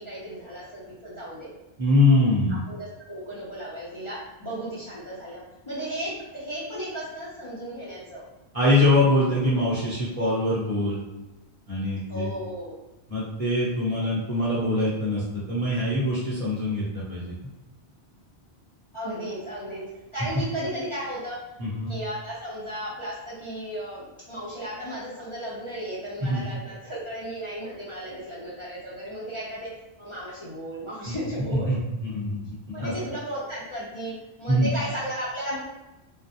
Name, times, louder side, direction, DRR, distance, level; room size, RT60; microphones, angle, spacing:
voice 1, 0.0-1.5 2.5-8.2 12.1-12.8 18.9-19.8 20.1-21.4 21.9-29.7 30.0-31.7 32.7-35.6, right 1 dB, 35° left, -10 dB, 0.6 m, -35 dB
voice 2, 1.8-2.6 8.5-11.0 11.7-12.3 13.1-17.2 21.6-21.9 26.2-26.4 31.1-31.2 31.5-32.4 32.7-32.9 34.5-34.7, left 1 dB, 40° right, -9 dB, 0.7 m, -23 dB
2.4 x 2.0 x 2.7 m, 1.0 s
omnidirectional pair, 1.1 m